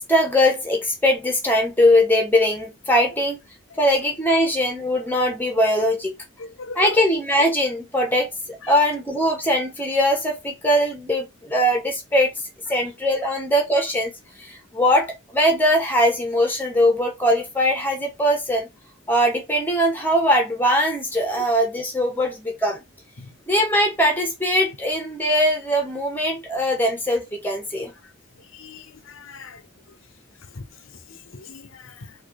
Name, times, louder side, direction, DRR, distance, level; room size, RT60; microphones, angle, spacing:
voice 1, 0.1-3.4 3.8-6.1 6.7-12.3 12.7-14.1 14.4-18.7 19.1-22.8 23.5-27.9, equal, 10° left, 1.2 m, -21 dB
voice 2, 6.4-6.8 8.6-8.7 23.2-23.3 28.5-29.6 30.5-30.6 31.1-32.1, left 3 dB, 75° left, 0.8 m, -40 dB
4.2 x 2.7 x 4.7 m
head